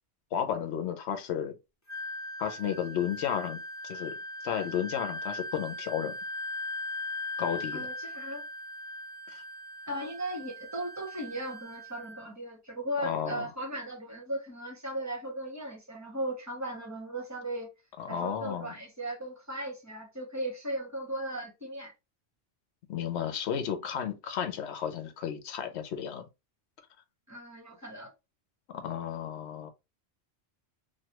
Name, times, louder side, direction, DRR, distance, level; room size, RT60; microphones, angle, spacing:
voice 1, 0.3-1.5 2.4-3.6 3.8-4.1 4.4-6.2 7.4-7.9 9.3-9.4 13.0-13.5 18.0-18.7 22.9-26.2 28.7-29.7, left 9 dB, 75° left, 0.9 m, -33 dB
Wind instrument woodwind instrument, 1.9-12.3, left 1 dB, 20° left, 0.6 m, -39 dB
voice 2, 7.7-8.4 9.9-17.7 18.1-21.9 27.3-28.1, right 1 dB, 15° right, 0.9 m, -37 dB
3.2 x 2.2 x 2.9 m
omnidirectional pair, 1.1 m